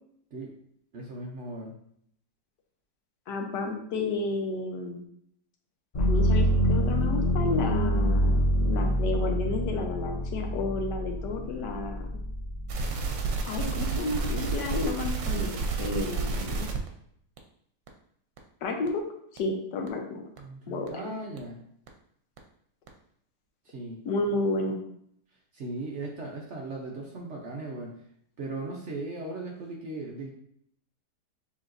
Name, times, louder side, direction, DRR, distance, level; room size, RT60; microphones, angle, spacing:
voice 1, 0.9-1.7 20.4-21.6 23.6-24.0 25.5-27.9 28.4-30.3, right 2 dB, 55° right, -1 dB, 0.9 m, -37 dB
voice 2, 3.3-5.0 6.0-12.1 13.4-16.7 18.6-19.0 19.3-20.2 20.7-20.9 24.0-24.8, left 2 dB, 80° left, 2 dB, 1.4 m, -31 dB
sound 1, 5.9-13.8 14.2-15.0, equal, 45° left, 0.6 m, -27 dB
sound 2, 12.7-16.9 17.4-17.5 17.9-18.0 18.4-18.5 18.9-19.0 19.4-19.5 19.9-20.0 20.4-20.5 20.9-21.0 21.4-21.5 21.9-22.0 22.4-22.5 22.9-23.0, right 4 dB, 85° right, 1.3 m, -30 dB
6.8 x 3.1 x 2.6 m, 0.68 s
omnidirectional pair, 1.8 m